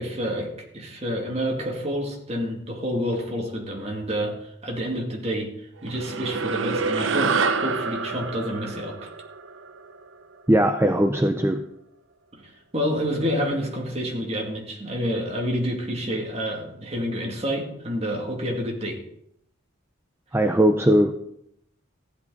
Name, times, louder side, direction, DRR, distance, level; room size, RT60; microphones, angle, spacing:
voice 1, 0.0-5.5 5.8-9.1 12.3-19.0, equal, 35° right, 0 dB, 2.5 m, -28 dB
sound 1, 5.9-10.5, right 5 dB, 70° right, 0.7 m, -27 dB
voice 2, 10.5-11.6 20.3-21.1, right 1 dB, 10° right, 6 dB, 0.6 m, -19 dB
15.0 x 11.0 x 4.1 m, 0.76 s
head